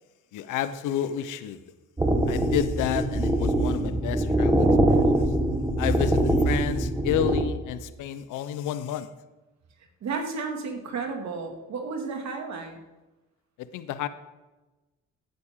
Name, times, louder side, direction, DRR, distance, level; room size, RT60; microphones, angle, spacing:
voice 1, 0.3-1.6 2.3-5.2 5.8-9.1 13.6-14.1, left 10 dB, 85° left, 13 dB, 0.7 m, -30 dB
sound 1, 2.0-7.4, right 1 dB, 10° right, 1.3 m, -23 dB
voice 2, 10.0-12.8, right 4 dB, 65° right, 4 dB, 2.1 m, -32 dB
15.5 x 9.5 x 3.6 m, 1.1 s
cardioid pair, 90°, 30 cm